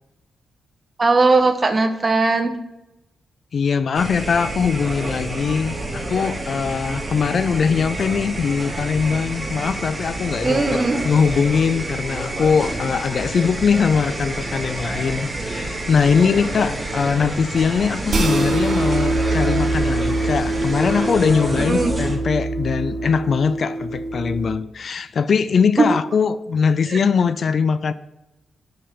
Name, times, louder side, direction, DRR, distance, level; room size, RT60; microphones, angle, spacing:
voice 1, 1.0-2.5 10.4-11.0 21.6-21.9 25.8-25.9 26.9-27.0, right 3 dB, 35° right, 0.8 m, -18 dB
voice 2, 3.5-27.9, left 6 dB, 60° left, 0.3 m, -21 dB
milk steamer, 3.9-22.2, right 2 dB, 20° right, 2.0 m, -29 dB
sound 1, 18.1-24.6, right 2 dB, 60° right, 1.3 m, -23 dB
5.6 x 5.5 x 5.0 m
cardioid pair, 60°, 0 cm